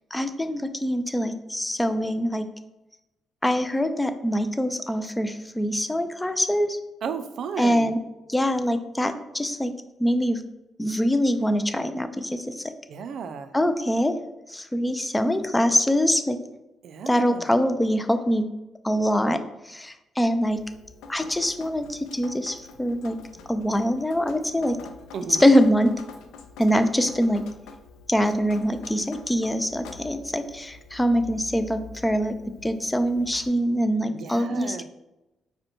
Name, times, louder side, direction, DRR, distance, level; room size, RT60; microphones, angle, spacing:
voice 1, 0.1-2.5 3.4-6.8 7.6-8.0 8.3-9.7 10.0-10.4 10.8-12.6 13.5-14.2 14.5-16.4 17.1-18.5 18.8-20.6 21.1-23.2 23.5-24.8 25.4-25.9 26.6-27.4 28.1-32.3 32.6-34.8, equal, 10° left, 9 dB, 0.4 m, -24 dB
voice 2, 7.0-7.9 12.9-13.5 16.8-17.5 25.1-25.4 34.1-34.8, right 6 dB, 65° right, 10 dB, 0.4 m, -34 dB
Drip, 20.5-33.5, left 4 dB, 90° left, 0.4 m, -46 dB
5.0 x 2.2 x 4.4 m, 0.98 s
cardioid pair, 90°, 0 cm